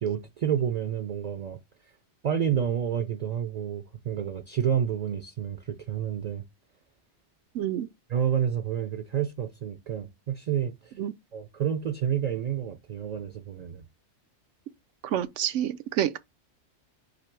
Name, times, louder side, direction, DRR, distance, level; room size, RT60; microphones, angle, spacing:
voice 1, 0.0-1.6 2.2-6.4 8.1-10.9 11.3-13.9, right 9 dB, 50° right, 0.5 m, -29 dB
voice 2, 7.5-7.9 11.0-11.1 15.0-16.2, right 11 dB, 85° right, 0.9 m, -28 dB
4.2 x 2.7 x 4.5 m
omnidirectional pair, 1.2 m